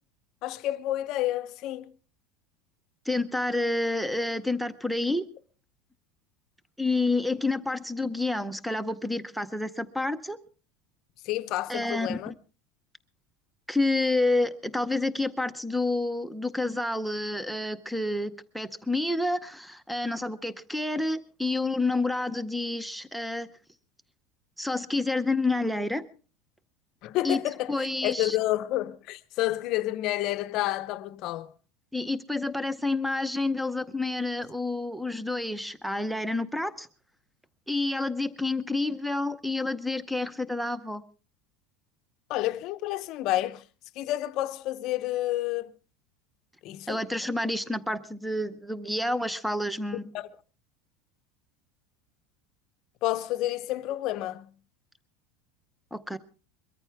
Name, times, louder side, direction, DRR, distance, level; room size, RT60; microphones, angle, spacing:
voice 1, 0.4-1.8 11.3-12.3 27.0-27.7 28.0-31.5 42.3-43.6 44.0-45.7 46.6-47.0 50.1-50.3 53.0-54.5, left 15 dB, 40° left, 0.7 m, -29 dB
voice 2, 3.1-5.3 6.8-10.4 11.7-12.3 13.7-23.5 24.6-26.1 27.2-27.4 27.7-28.4 31.9-36.9 37.7-41.0 46.9-50.1 55.9-56.2, left 2 dB, ahead, 0.7 m, -29 dB
22.5 x 14.0 x 3.4 m
supercardioid pair, 175°, 0 cm